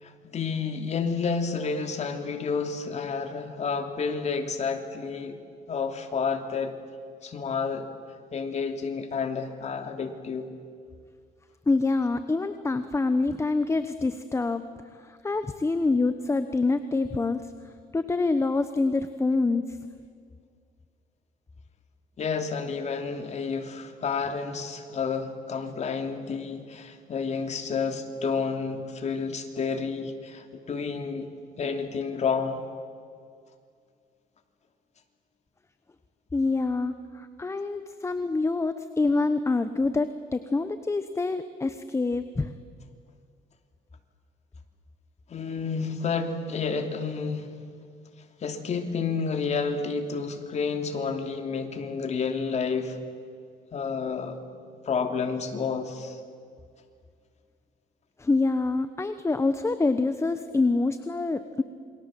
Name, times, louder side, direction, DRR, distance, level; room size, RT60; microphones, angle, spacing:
voice 1, 0.0-5.4 5.7-6.7 7.2-7.9 8.3-10.5 22.2-31.3 31.6-32.6 45.3-47.5 48.4-53.0 53.7-54.4 54.8-56.2, left 5 dB, 40° left, 5 dB, 2.9 m, -30 dB
voice 2, 11.7-14.6 15.0-17.5 17.9-19.8 36.3-42.5 58.2-61.6, left 3 dB, 15° left, 10 dB, 1.1 m, -26 dB
28.5 x 24.0 x 7.7 m, 2.2 s
cardioid pair, 110°, 17 cm